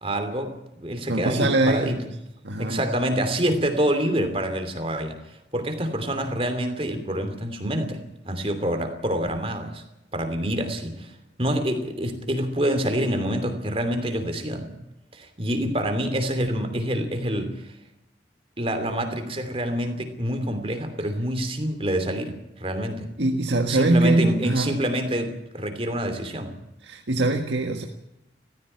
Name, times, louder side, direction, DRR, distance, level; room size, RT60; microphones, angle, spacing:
voice 1, 0.0-2.0 2.6-5.2 5.5-8.0 8.2-9.8 10.1-11.1 11.4-14.7 15.1-17.6 18.6-23.1 23.7-26.5, equal, 30° right, 8 dB, 2.9 m, -26 dB
voice 2, 1.1-2.0 2.4-2.8 23.2-24.8 26.8-27.8, right 2 dB, 90° right, 3 dB, 1.7 m, -22 dB
18.0 x 15.5 x 9.8 m, 0.89 s
head